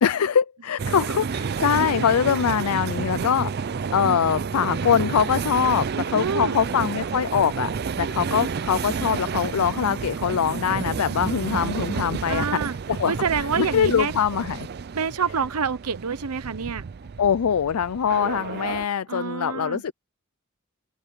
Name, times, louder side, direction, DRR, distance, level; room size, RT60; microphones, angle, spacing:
voice 1, 0.0-7.7 8.0-12.6 12.9-13.1 13.6-14.7 17.2-19.9, left 7 dB, 80° left, 0.4 m, -23 dB
sound 1, 0.8-18.9, right 5 dB, 45° right, 0.4 m, -30 dB
voice 2, 6.1-6.6 12.3-12.7 13.1-14.1 14.9-16.8 19.1-19.8, right 6 dB, 90° right, 0.9 m, -27 dB
open air
head